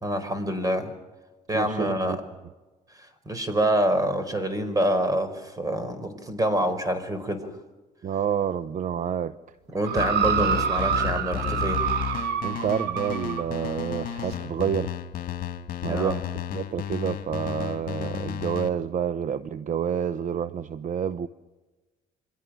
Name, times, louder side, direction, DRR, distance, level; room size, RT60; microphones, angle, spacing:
voice 1, 0.0-0.9 1.5-2.2 3.3-7.5 9.7-11.8 15.8-16.2, right 1 dB, 20° right, 11 dB, 4.4 m, -26 dB
voice 2, 1.5-2.2 8.0-9.3 12.4-15.0 15.8-16.2 16.5-21.3, right 8 dB, 50° right, 13 dB, 0.8 m, -28 dB
sound 1, 9.8-13.5 14.3-14.4, right 8 dB, 75° right, 1.8 m, -27 dB
sound 2, 10.0-18.7, left 10 dB, 55° left, 2.2 m, -33 dB
28.5 x 23.5 x 6.2 m, 1.2 s
cardioid pair, 110°, 17 cm